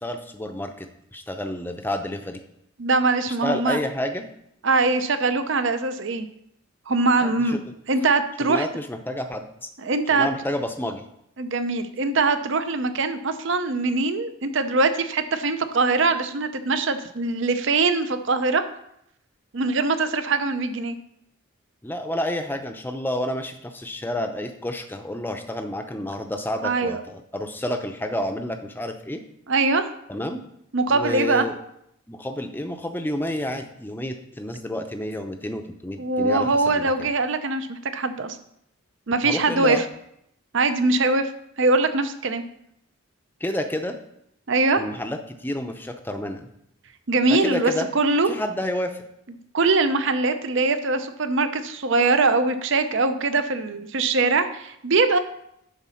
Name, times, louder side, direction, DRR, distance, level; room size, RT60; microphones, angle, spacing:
voice 1, 0.0-2.4 3.4-4.3 7.2-7.7 8.4-9.7 10.1-11.0 21.8-29.2 30.1-30.4 30.9-31.6 32.1-36.9 39.2-39.8 43.4-43.9 44.8-46.5 47.3-47.9 48.3-49.0, left 1 dB, 10° left, 5 dB, 0.6 m, -30 dB
voice 2, 2.8-3.8 4.6-6.2 6.9-7.6 7.9-8.7 9.8-10.3 11.4-18.6 19.5-21.0 26.6-27.0 29.5-29.9 30.7-31.5 36.0-38.4 39.1-39.8 40.5-41.3 41.6-42.4 44.5-44.8 47.1-48.3 49.5-55.2, right 3 dB, 60° right, 9 dB, 0.6 m, -22 dB
10.0 x 4.0 x 5.7 m, 0.76 s
head